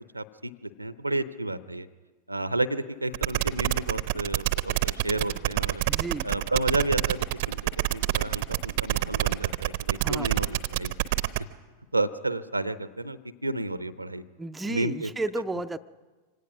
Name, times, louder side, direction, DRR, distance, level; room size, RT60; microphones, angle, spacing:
voice 1, 0.1-1.9 2.3-5.8 6.2-10.9 11.9-14.2 14.6-15.4, right 2 dB, 85° right, 16 dB, 0.7 m, -31 dB
sound 1, 3.1-11.4, right 18 dB, 50° right, 0.7 m, -27 dB
voice 2, 5.9-6.3 10.0-10.3 14.4-15.8, right 2 dB, 10° right, 8 dB, 0.5 m, -32 dB
24.5 x 17.5 x 6.2 m, 1.3 s
figure-of-eight pair, 90°, 0 cm